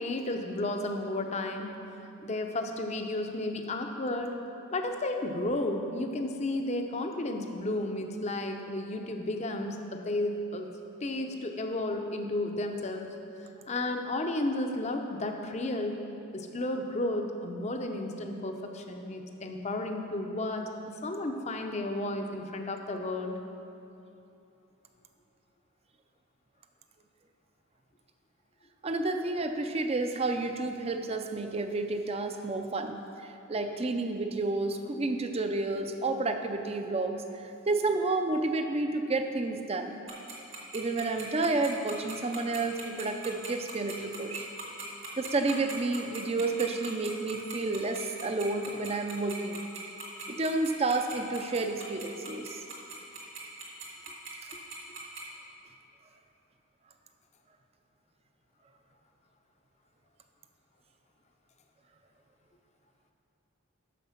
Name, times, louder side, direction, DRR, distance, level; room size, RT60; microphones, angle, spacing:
voice 1, 0.0-1.7 2.0-4.4 4.7-10.7 11.0-13.1 13.7-16.0 16.3-20.7 21.0-23.3, left 2 dB, 30° left, 4 dB, 0.6 m, -33 dB
voice 2, 28.8-39.9 40.7-44.5 45.2-49.6 50.3-52.6, right 3 dB, 30° right, 6 dB, 0.5 m, -30 dB
Tick-tock, 40.1-55.2, right 5 dB, 65° right, 2.0 m, -40 dB
9.2 x 6.6 x 5.7 m, 2.8 s
head